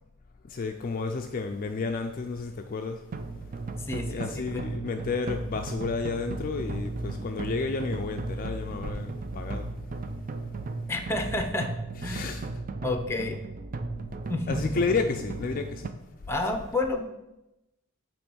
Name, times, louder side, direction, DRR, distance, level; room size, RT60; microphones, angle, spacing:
voice 1, 0.5-3.0 4.1-9.7 12.0-12.5 14.5-15.9, left 4 dB, 40° left, 0.4 m, -31 dB
sound 1, 3.1-15.9, right 3 dB, 40° right, 0.4 m, -35 dB
voice 2, 3.9-4.6 10.9-11.7 12.0-12.2 12.8-13.4 14.3-14.7 16.3-17.0, left 2 dB, 10° left, 0.7 m, -30 dB
8.6 x 3.0 x 6.2 m
head